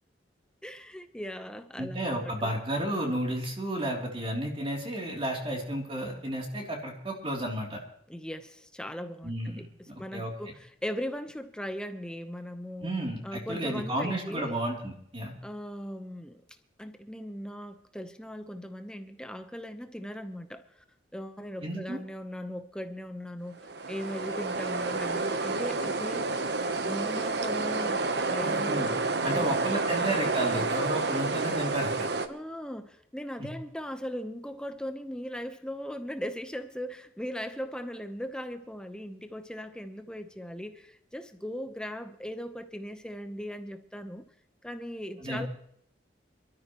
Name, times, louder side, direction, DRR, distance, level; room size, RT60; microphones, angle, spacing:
voice 1, 0.6-2.6 8.1-12.9 13.2-14.6 15.4-16.4 16.8-20.6 21.1-26.4 26.9-29.0 29.3-30.0 32.3-44.2 44.6-45.5, equal, 5° left, 8 dB, 1.0 m, -39 dB
voice 2, 1.8-7.8 9.2-9.7 10.1-10.3 12.8-15.3 21.6-22.0 28.4-28.9 29.2-32.1 33.4-33.5 45.2-45.4, right 1 dB, 30° right, 0 dB, 3.2 m, -32 dB
sound 1, 23.6-32.3, right 3 dB, 65° right, 1.1 m, -29 dB
25.5 x 13.0 x 3.1 m, 0.69 s
head